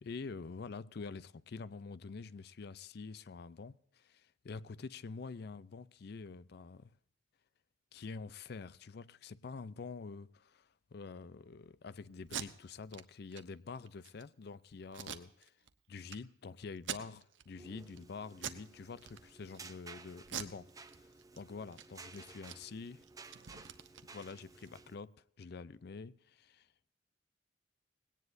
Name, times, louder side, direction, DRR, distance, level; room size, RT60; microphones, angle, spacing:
voice 1, 0.0-6.9 7.9-15.5 15.9-21.0 21.3-23.0 24.1-26.7, left 4 dB, 55° left, 0.4 m, -47 dB
Packing tape duct tape, 12.2-12.5 12.9-13.0 13.3-13.4 13.9-14.2 14.9-15.7 16.1-16.2 16.8-17.4 17.8-18.0 18.4-18.7 19.0-19.6 20.2-21.4 21.7-21.8 22.1-24.7, right 8 dB, 75° right, 0.9 m, -44 dB
sound 1, 17.4-25.0, right 3 dB, 20° right, 0.6 m, -55 dB
19.0 x 17.5 x 2.6 m
head